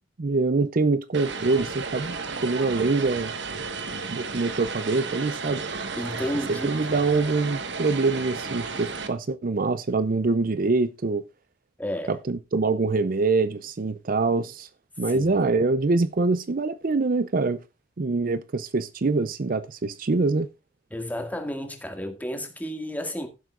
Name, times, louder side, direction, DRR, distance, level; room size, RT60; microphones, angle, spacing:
voice 1, 0.2-3.3 4.1-5.6 6.5-11.2 12.1-14.7 15.0-17.6 18.0-20.5, right 3 dB, 45° right, 0.5 m, -24 dB
Vehicle, 1.1-9.1, right 4 dB, 60° right, 1.4 m, -33 dB
voice 2, 6.0-6.9 11.8-12.2 15.1-15.3 20.9-23.3, equal, 10° left, 2.0 m, -32 dB
15.5 x 8.0 x 2.4 m
head